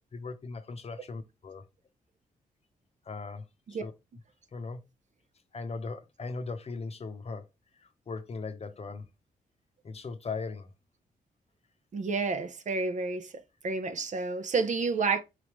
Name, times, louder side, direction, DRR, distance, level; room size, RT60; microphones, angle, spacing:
voice 1, 0.1-1.6 3.1-3.9 4.5-4.8 5.5-7.4 7.8-9.0 9.8-10.7, left 4 dB, 40° left, 0.7 m, -38 dB
voice 2, 11.9-15.2, right 4 dB, 55° right, 0.7 m, -30 dB
4.0 x 3.2 x 3.0 m
cardioid pair, 65°, 15 cm